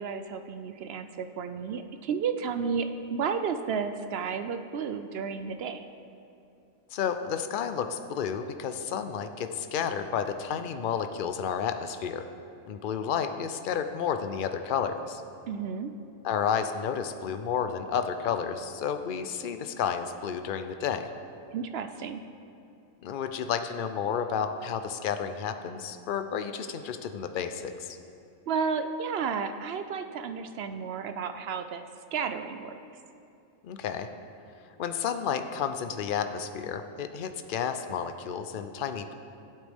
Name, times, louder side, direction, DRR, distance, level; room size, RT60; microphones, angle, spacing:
voice 1, 0.0-5.8 15.5-15.9 21.5-22.2 28.5-31.8 32.1-32.7, right 6 dB, 65° right, 8 dB, 0.7 m, -32 dB
voice 2, 6.9-12.2 12.7-15.2 16.2-21.1 23.0-28.0 33.6-34.1 34.8-39.1, left 7 dB, 55° left, 8 dB, 0.6 m, -31 dB
16.0 x 8.2 x 3.5 m, 2.7 s
omnidirectional pair, 1.4 m